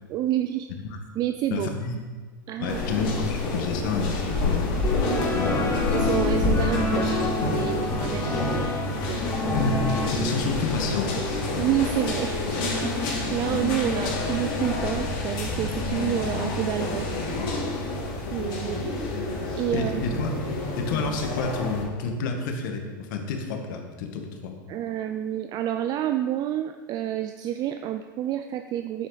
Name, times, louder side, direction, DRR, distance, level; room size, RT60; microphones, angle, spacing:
voice 1, 0.1-0.7 1.2-1.7 2.5-2.8 5.0-5.3 5.9-8.7 9.1-9.3 10.1-10.4 11.5-17.2 18.3-18.9 19.5-20.2 24.7-29.1, right 12 dB, 35° right, 9 dB, 0.4 m, -29 dB
voice 2, 1.5-2.0 2.6-4.7 5.2-5.6 9.5-11.6 19.7-20.4 20.8-24.5, left 4 dB, 60° left, 4 dB, 1.7 m, -29 dB
sound 1, 2.7-21.8, left 2 dB, 45° left, 3.2 m, -28 dB
sound 2, 4.8-10.1, left 2 dB, 25° left, 1.8 m, -28 dB
10.0 x 8.1 x 4.1 m, 1.4 s
hypercardioid pair, 110°, 11 cm